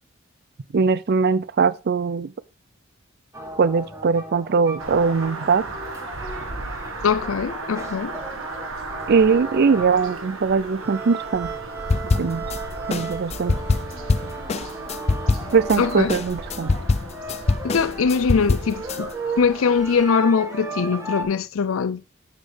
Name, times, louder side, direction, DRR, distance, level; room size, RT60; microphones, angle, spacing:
voice 1, 0.7-2.3 3.6-5.8 9.1-11.5 12.2-12.4 12.9-13.6 15.5-16.7, right 5 dB, 55° right, 0.5 m, -21 dB
sound 1, 3.3-21.2, right 2 dB, 15° right, 1.7 m, -35 dB
sound 2, 4.8-20.1, right 3 dB, 80° right, 1.6 m, -36 dB
voice 2, 7.0-8.2 15.8-16.1 17.6-19.1 19.4-22.0, left 5 dB, 90° left, 0.5 m, -22 dB
sound 3, 11.9-12.6 12.9-15.8 16.1-19.0, left 3 dB, 30° left, 0.4 m, -23 dB
10.0 x 7.4 x 3.4 m
head